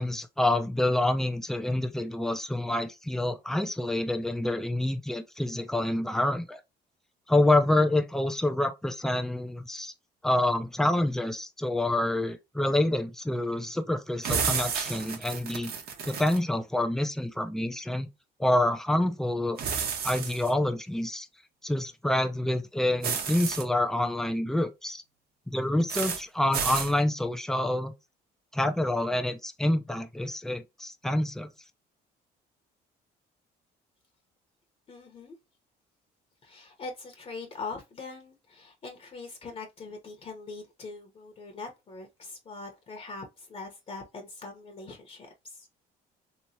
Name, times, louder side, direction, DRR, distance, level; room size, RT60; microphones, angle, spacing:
voice 1, 0.0-6.6 7.3-9.9 10.2-15.7 16.1-18.1 18.4-19.6 20.0-21.3 21.6-25.0 25.5-27.9 28.5-31.5, left 1 dB, 5° left, 0.6 m, -27 dB
sound 1, 14.2-16.4 19.6-20.5 23.0-23.6 25.9-26.2 26.5-26.9, right 6 dB, 65° right, 1.2 m, -31 dB
voice 2, 34.9-35.4 36.4-45.7, left 3 dB, 35° left, 1.0 m, -42 dB
3.3 x 3.1 x 2.7 m
cardioid pair, 110°, 17 cm